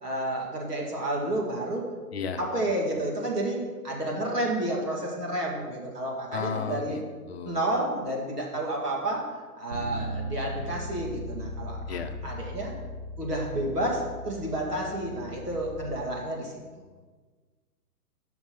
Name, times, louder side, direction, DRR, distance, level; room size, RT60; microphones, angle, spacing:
voice 1, 0.0-1.9 2.4-7.0 7.5-9.3 9.6-11.8 12.2-12.7 13.2-16.5, right 1 dB, 85° right, -2 dB, 2.3 m, -30 dB
voice 2, 2.1-2.4 6.3-7.6 11.9-12.1, left 6 dB, 40° left, 8 dB, 0.6 m, -34 dB
Bass guitar, 9.7-15.9, equal, 20° right, 0.4 m, -38 dB
5.9 x 5.9 x 5.5 m, 1.4 s
figure-of-eight pair, 130°, 46 cm